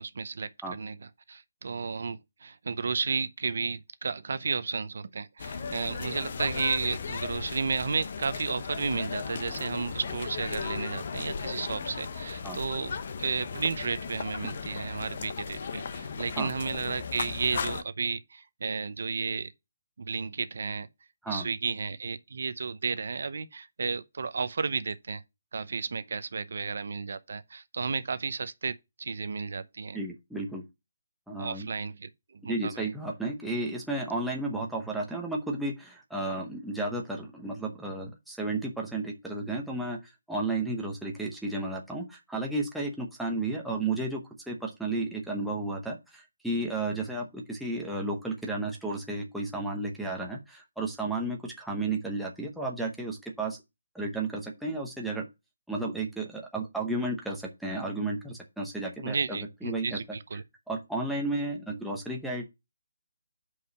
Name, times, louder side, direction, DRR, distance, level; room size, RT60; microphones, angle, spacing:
voice 1, 0.0-19.5 20.0-20.9 21.3-25.2 25.5-30.0 31.4-32.9 59.0-60.4, right 5 dB, 55° right, 0.7 m, -33 dB
sound 1, 5.4-17.8, left 5 dB, 40° left, 0.7 m, -36 dB
voice 2, 29.9-30.6 31.3-31.7 32.4-40.0 40.3-53.6 53.9-55.2 55.7-60.0 60.7-62.5, right 2 dB, ahead, 0.9 m, -33 dB
5.5 x 4.9 x 6.5 m
hypercardioid pair, 175°, 0 cm